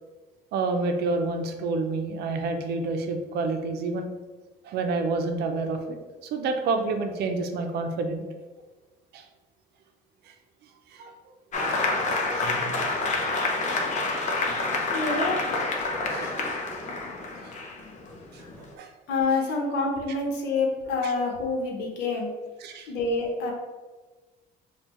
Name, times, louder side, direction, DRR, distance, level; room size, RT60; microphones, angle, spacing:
voice 1, 0.5-4.1 4.6-6.0 6.2-8.3 9.1-9.2 10.3-10.4 10.9-11.1 11.9-12.0 13.1-14.4 16.1-16.5 17.4-17.5 18.3-18.4 18.8-18.9 21.0-21.1 22.6-22.9, right 3 dB, 75° right, 5 dB, 0.6 m, -29 dB
Applause, 11.5-18.7, left 3 dB, 45° left, 0.7 m, -28 dB
voice 2, 14.9-15.5 19.1-22.3 22.9-23.5, left 3 dB, 85° left, 0 dB, 0.9 m, -27 dB
5.4 x 2.3 x 2.9 m, 1.3 s
cardioid pair, 110°, 17 cm